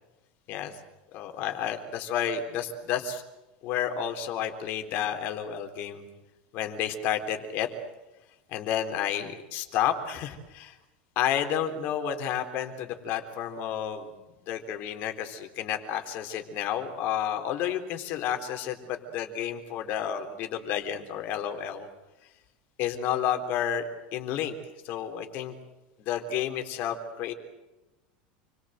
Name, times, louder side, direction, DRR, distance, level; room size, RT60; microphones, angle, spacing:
voice 1, 1.1-3.2 3.6-6.0 6.5-7.7 8.5-10.8 11.2-14.1 14.5-21.9 22.8-24.6 24.8-25.6 26.0-27.3, left 9 dB, 40° left, 6 dB, 3.7 m, -31 dB
29.5 x 23.0 x 7.9 m, 1.1 s
supercardioid pair, 165°, 5 cm